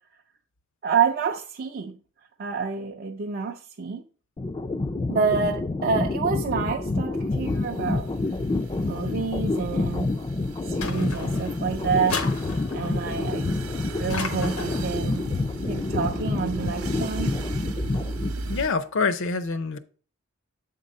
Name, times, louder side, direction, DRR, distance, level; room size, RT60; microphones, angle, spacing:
voice 1, 0.8-2.0 2.4-4.0 5.1-8.1 8.9-10.1 10.6-12.2 12.7-13.5 14.0-15.2 15.7-17.3, right 5 dB, 45° right, 0.4 m, -28 dB
sound 1, 4.4-18.6, left 2 dB, 20° left, 0.3 m, -28 dB
sound 2, 6.7-18.7, right 3 dB, 85° right, 0.8 m, -38 dB
sound 3, 10.8-11.6 12.1-13.0 14.1-14.9, left 4 dB, 90° left, 1.0 m, -33 dB
voice 2, 18.5-19.8, left 4 dB, 60° left, 0.6 m, -26 dB
7.8 x 3.8 x 5.3 m
head